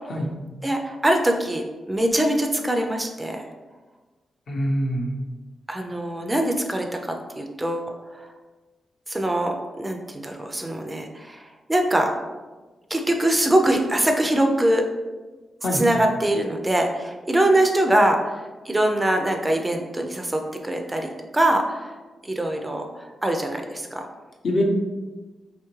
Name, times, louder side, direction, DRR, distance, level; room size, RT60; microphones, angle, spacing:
voice 1, 0.6-3.4 5.7-8.2 9.1-12.1 12.9-14.8 15.7-22.0 22.2-24.1, right 1 dB, 15° right, 3 dB, 0.3 m, -23 dB
voice 2, 4.5-5.1 15.6-15.8 24.4-24.6, left 1 dB, 60° left, 0 dB, 0.6 m, -24 dB
3.4 x 2.9 x 3.0 m, 1.2 s
wide cardioid pair, 130°, 0 cm